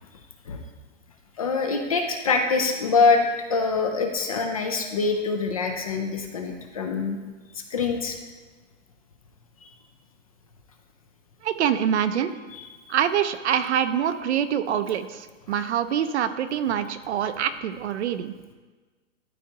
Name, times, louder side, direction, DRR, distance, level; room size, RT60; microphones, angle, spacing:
voice 1, 1.4-3.2 3.5-7.2 7.5-8.2 9.6-9.7 12.5-12.8, left 4 dB, 30° left, 4 dB, 0.4 m, -24 dB
voice 2, 11.4-12.3 12.9-18.3, right 9 dB, 60° right, 11 dB, 0.6 m, -25 dB
12.5 x 4.3 x 2.8 m, 1.3 s
hypercardioid pair, 160°, 38 cm